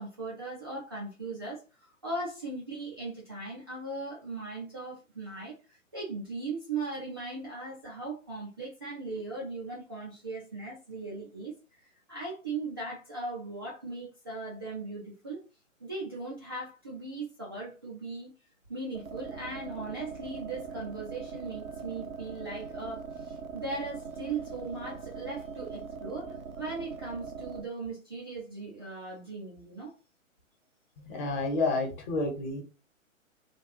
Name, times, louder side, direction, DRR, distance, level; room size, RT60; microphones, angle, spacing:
voice 1, 0.0-15.4 15.8-18.3 18.7-29.9, right 3 dB, 20° right, 0.3 m, -38 dB
sound 1, 18.9-27.6, right 5 dB, 85° right, 0.7 m, -41 dB
voice 2, 31.0-32.6, left 3 dB, 35° left, 1.2 m, -29 dB
3.3 x 2.4 x 2.9 m
figure-of-eight pair, 125°, 41 cm